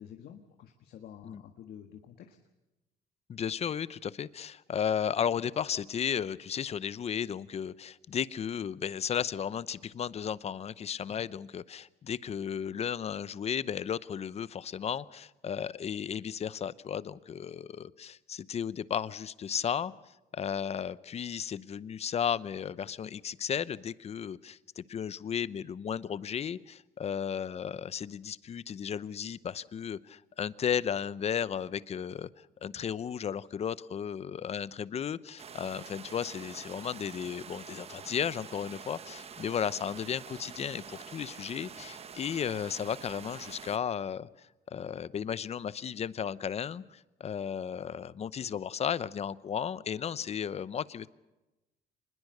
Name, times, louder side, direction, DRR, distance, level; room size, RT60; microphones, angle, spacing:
voice 1, 0.0-2.4 11.1-11.3, left 9 dB, 65° left, 5 dB, 1.6 m, -49 dB
voice 2, 3.3-19.9 20.3-51.1, left 8 dB, 40° left, 17 dB, 0.8 m, -34 dB
sound 1, 35.4-43.8, right 6 dB, 35° right, 1.2 m, -46 dB
25.5 x 21.0 x 6.7 m, 1.0 s
cardioid pair, 110°, 17 cm